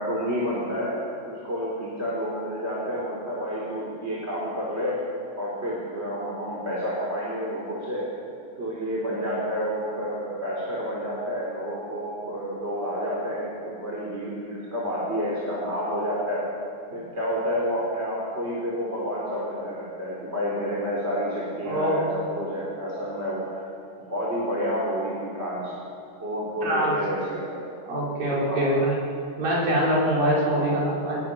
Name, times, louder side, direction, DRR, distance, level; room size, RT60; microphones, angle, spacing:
voice 1, 0.0-8.1 8.6-16.5 16.9-23.7 24.1-25.7 26.2-27.7 28.4-28.7 30.5-30.7, equal, 20° right, -5 dB, 3.9 m, -29 dB
voice 2, 21.7-22.0 26.6-27.0 27.9-29.0 29.4-31.2, right 1 dB, 80° right, -6 dB, 6.7 m, -23 dB
22.0 x 20.5 x 6.9 m, 2.6 s
omnidirectional pair, 3.9 m